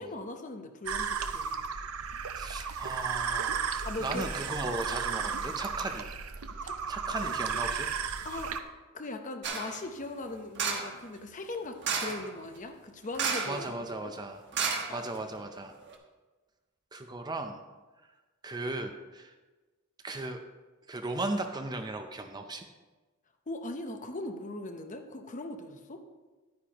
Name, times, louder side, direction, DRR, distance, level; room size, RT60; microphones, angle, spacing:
voice 1, 0.0-1.5 3.8-4.3 6.6-7.3 8.2-8.5 8.9-13.7 14.0-14.1 14.9-15.0 23.5-26.0, left 2 dB, 35° left, 6 dB, 0.8 m, -39 dB
sound 1, 0.9-8.6, right 6 dB, 70° right, 0.6 m, -34 dB
voice 2, 2.4-3.7 4.0-6.1 6.9-7.9 13.5-14.4 14.9-15.8 16.9-17.6 18.4-19.3 20.0-20.4 20.9-22.7, right 2 dB, 20° right, 6 dB, 0.5 m, -36 dB
sound 2, 9.4-9.8 10.6-11.0 11.8-12.3 13.1-13.7 13.9-14.0 14.5-15.4 15.9-16.0, right 5 dB, 55° right, 1.1 m, -32 dB
10.5 x 9.5 x 2.9 m, 1.2 s
head